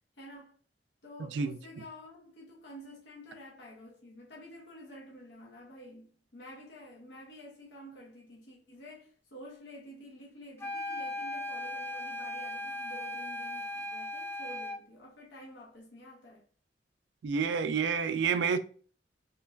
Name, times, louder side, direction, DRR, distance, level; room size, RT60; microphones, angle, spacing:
voice 1, 0.2-0.6 1.0-16.4, equal, 70° left, 0.7 m, -50 dB
sound 1, 10.6-14.9, left 1 dB, 15° left, 0.4 m, -38 dB
voice 2, 17.2-18.6, right 6 dB, 70° right, 0.3 m, -28 dB
3.1 x 2.2 x 2.2 m
head